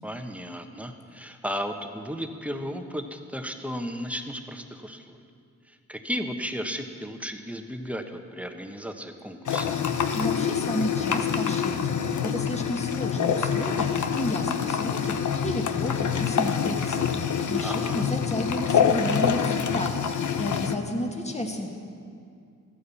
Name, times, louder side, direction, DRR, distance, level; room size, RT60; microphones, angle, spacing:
voice 1, 0.0-5.2 5.7-9.7 17.6-18.1, equal, 5° right, 5 dB, 1.3 m, -34 dB
sound 1, 9.5-20.8, left 7 dB, 65° left, 0.9 m, -26 dB
voice 2, 10.2-15.2 15.4-17.0 17.3-20.1 20.4-21.7, left 1 dB, 20° left, 1 dB, 1.9 m, -32 dB
14.0 x 9.5 x 7.1 m, 2.3 s
cardioid pair, 50°, 32 cm